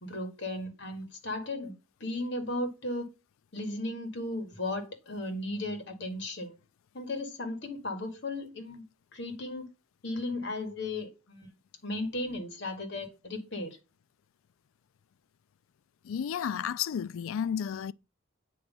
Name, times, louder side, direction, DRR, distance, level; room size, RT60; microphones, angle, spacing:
voice 1, 0.0-1.7 2.0-3.1 3.5-6.6 6.9-8.8 9.1-9.7 10.0-11.5 11.8-13.8, left 2 dB, 55° left, 1.7 m, -35 dB
voice 2, 16.0-17.9, left 8 dB, 80° left, 0.3 m, -32 dB
8.7 x 3.1 x 5.3 m
head